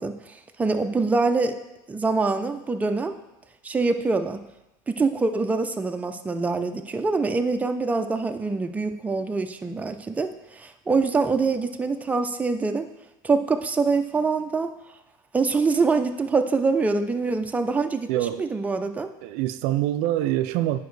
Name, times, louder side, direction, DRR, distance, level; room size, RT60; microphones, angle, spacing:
voice 1, 0.0-1.5 1.9-3.1 3.6-4.4 4.9-12.9 13.2-14.7 15.3-19.1, right 4 dB, 15° right, 0.5 m, -24 dB
voice 2, 18.1-18.5 19.2-20.8, right 14 dB, 70° right, 0.4 m, -25 dB
9.2 x 5.1 x 3.2 m
supercardioid pair, 110°, 11 cm